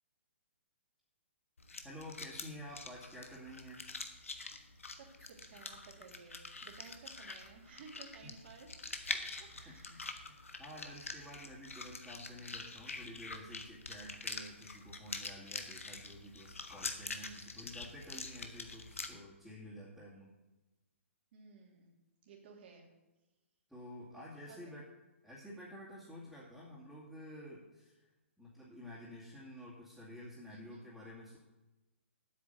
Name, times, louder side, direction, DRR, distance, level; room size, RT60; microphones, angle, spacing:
sound 1, 1.6-19.1, left 3 dB, 85° left, 1.3 m, -45 dB
voice 1, 1.8-3.9 8.2-8.3 9.6-20.3 23.7-24.9 25.2-28.0 28.4-31.4, equal, ahead, -11 dB, 2.5 m, -50 dB
voice 2, 4.9-10.0 21.3-21.9 22.2-22.9 24.5-24.6 30.5-30.8, right 5 dB, 50° right, 0 dB, 2.7 m, -56 dB
8.7 x 7.1 x 8.0 m, 1.1 s
hypercardioid pair, 130°, 7 cm